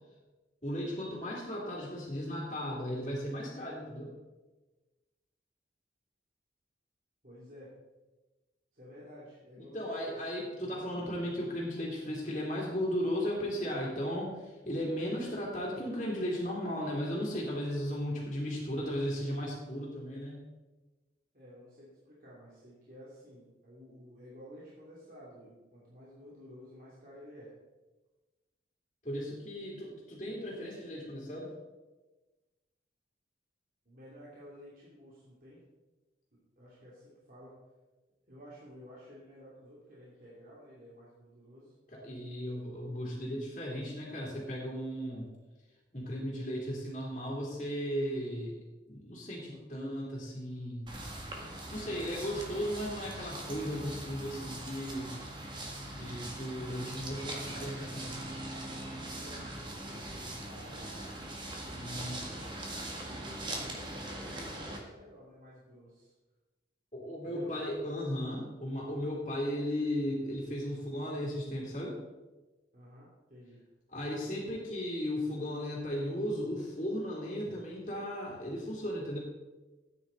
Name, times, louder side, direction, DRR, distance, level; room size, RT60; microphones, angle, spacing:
voice 1, 0.6-4.1 9.6-20.4 29.0-31.5 41.9-45.3 45.9-48.6 48.9-50.9 51.7-55.2 55.9-58.1 61.7-62.3 66.9-72.0 73.9-79.2, equal, 35° left, -8 dB, 3.1 m, -36 dB
voice 2, 7.2-7.7 8.7-10.1 10.5-10.7 21.3-27.5 33.8-35.6 36.6-37.6 38.3-41.7 49.5-49.6 59.1-62.4 62.7-66.1 67.2-67.5 72.7-73.6, equal, 50° right, -7 dB, 2.8 m, -53 dB
sound 1, 50.9-64.8, right 1 dB, 25° right, 1.8 m, -41 dB
13.5 x 9.4 x 4.0 m, 1.2 s
head